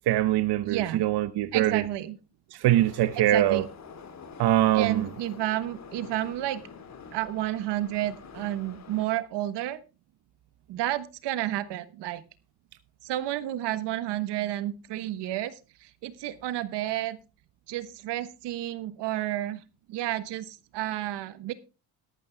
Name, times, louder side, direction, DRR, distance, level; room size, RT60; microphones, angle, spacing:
voice 1, 0.1-1.8 2.5-3.6 4.4-5.1, right 13 dB, 70° right, 0.9 m, -23 dB
voice 2, 0.6-1.0 1.5-2.2 3.2-3.6 4.7-6.6 7.1-9.8 10.7-12.2 13.0-17.2 17.7-19.6 19.9-21.5, right 14 dB, 85° right, 1.4 m, -31 dB
Subway metro underground, 2.7-9.1, left 5 dB, 40° left, 2.4 m, -46 dB
13.5 x 12.0 x 3.5 m
cardioid pair, 130°, 41 cm